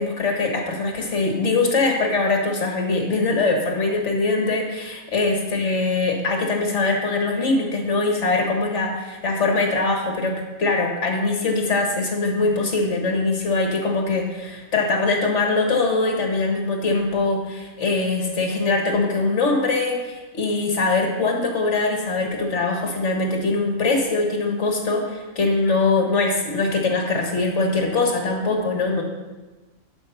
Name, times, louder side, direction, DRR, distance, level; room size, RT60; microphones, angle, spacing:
voice 1, 0.0-29.0, left 3 dB, 55° left, 2 dB, 1.8 m, -22 dB
11.5 x 5.1 x 5.7 m, 1.2 s
omnidirectional pair, 1.5 m